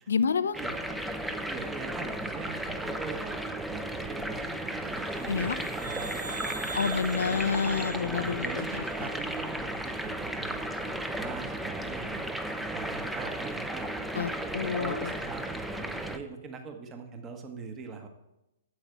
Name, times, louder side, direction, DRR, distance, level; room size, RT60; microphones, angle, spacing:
voice 1, 0.1-0.6 5.3-5.6 6.8-9.1 14.1-15.1, left 6 dB, 65° left, 16 dB, 0.5 m, -29 dB
sound 1, 0.5-16.2, right 1 dB, 5° right, 0.7 m, -34 dB
voice 2, 1.5-7.3 8.0-14.2 14.6-18.1, right 5 dB, 20° right, 5 dB, 1.3 m, -42 dB
sound 2, 5.0-9.5, right 4 dB, 70° right, 0.7 m, -43 dB
9.6 x 7.9 x 4.6 m, 0.90 s
figure-of-eight pair, 115°, 0 cm